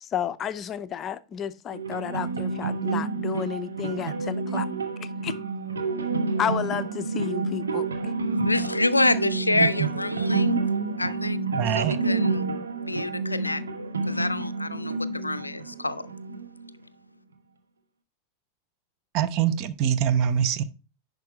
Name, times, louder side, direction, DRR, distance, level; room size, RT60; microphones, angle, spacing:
voice 1, 0.0-4.7 5.2-5.3 6.4-8.1, left 9 dB, 25° left, 0.5 m, -32 dB
sound 1, 1.7-16.7, right 3 dB, 70° right, 1.0 m, -29 dB
voice 2, 8.4-10.5 11.0-11.4 11.8-12.4 12.9-13.6 14.1-16.0, left 2 dB, 85° left, 0.4 m, -27 dB
voice 3, 9.5-9.9 11.5-12.0 19.1-20.6, right 9 dB, 40° right, 0.6 m, -24 dB
10.5 x 5.2 x 3.0 m
figure-of-eight pair, 90°, 0 cm